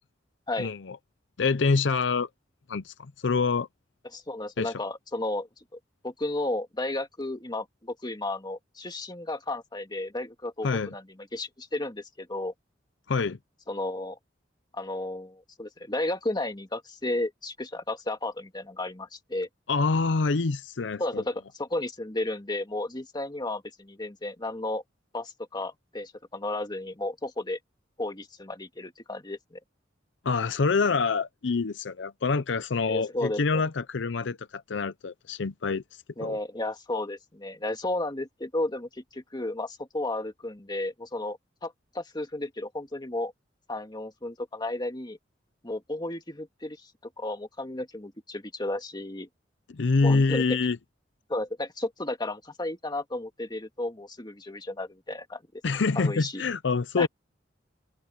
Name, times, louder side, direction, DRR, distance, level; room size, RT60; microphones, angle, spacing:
voice 1, 0.6-1.0 1.4-2.3 2.7-3.7 4.6-4.7 10.6-10.9 13.1-13.4 19.7-21.2 30.2-35.8 36.2-36.4 49.7-50.8 55.6-57.1, left 4 dB, 75° left, 0.6 m, -26 dB
voice 2, 4.1-5.5 6.0-11.0 11.3-12.5 13.7-14.2 14.7-19.5 21.0-24.8 25.1-27.6 28.0-29.6 32.9-33.6 36.2-43.3 43.7-45.2 45.6-46.8 47.0-49.3 50.0-50.6 51.3-55.6 56.0-56.4 57.0-57.1, left 2 dB, 25° left, 2.0 m, -33 dB
open air
head